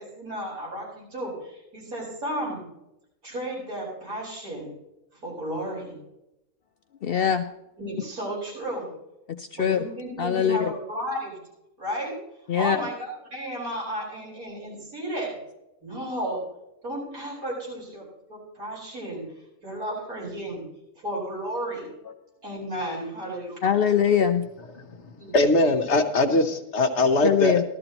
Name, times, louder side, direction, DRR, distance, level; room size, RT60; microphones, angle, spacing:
voice 1, 0.0-2.6 3.2-4.7 5.2-6.0 7.8-8.9 9.5-11.4 11.8-12.1 12.5-15.4 15.8-16.4 16.8-19.2 19.6-20.6 20.9-21.9 22.4-23.6 25.2-25.5, right 1 dB, 80° right, -5 dB, 5.3 m, -33 dB
voice 2, 7.0-7.4 9.4-9.8 10.2-10.7 12.5-12.8 23.6-24.4 27.2-27.6, left 8 dB, 75° left, 8 dB, 0.5 m, -22 dB
voice 3, 24.7-27.6, left 2 dB, 55° left, 6 dB, 1.1 m, -22 dB
15.5 x 12.5 x 2.9 m, 0.89 s
omnidirectional pair, 1.5 m